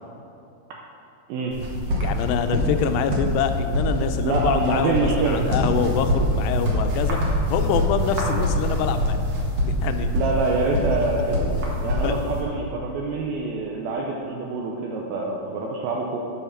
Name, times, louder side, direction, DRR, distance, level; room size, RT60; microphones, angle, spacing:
sound 1, 1.5-12.4, equal, 55° right, 2.0 m, -24 dB
voice 1, 2.0-7.2 7.5-9.2 9.8-10.1 10.9-11.1 12.0-12.2, left 7 dB, 90° left, 8 dB, 2.8 m, -25 dB
voice 2, 4.2-5.4 10.1-11.4 11.8-16.2, right 3 dB, 80° right, -1 dB, 2.3 m, -26 dB
8.6 x 7.1 x 5.8 m, 2.7 s
omnidirectional pair, 4.8 m